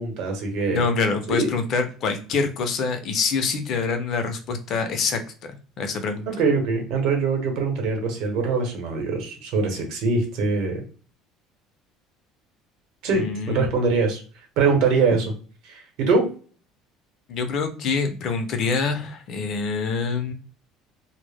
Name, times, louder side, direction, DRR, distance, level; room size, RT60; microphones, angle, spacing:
voice 1, 0.0-0.9 1.3-1.5 6.3-10.8 13.0-14.2 14.6-15.2 15.6-16.3, right 4 dB, 65° right, 3 dB, 0.8 m, -23 dB
voice 2, 0.7-5.2 5.8-6.3 13.1-13.6 17.3-20.3, left 4 dB, 45° left, 7 dB, 0.4 m, -25 dB
2.0 x 2.0 x 3.3 m, 0.39 s
cardioid pair, 150°, 0 cm